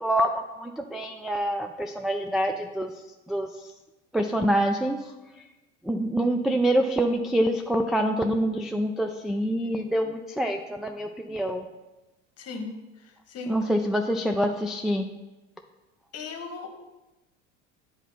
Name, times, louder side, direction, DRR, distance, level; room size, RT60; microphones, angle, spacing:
voice 1, 0.0-2.9 3.3-3.5 4.1-5.0 5.8-11.6 13.5-15.0, right 1 dB, ahead, 3 dB, 0.3 m, -26 dB
voice 2, 12.4-13.6 16.1-16.7, left 4 dB, 40° left, 5 dB, 1.4 m, -38 dB
8.2 x 4.1 x 5.6 m, 1.1 s
hypercardioid pair, 80°, 37 cm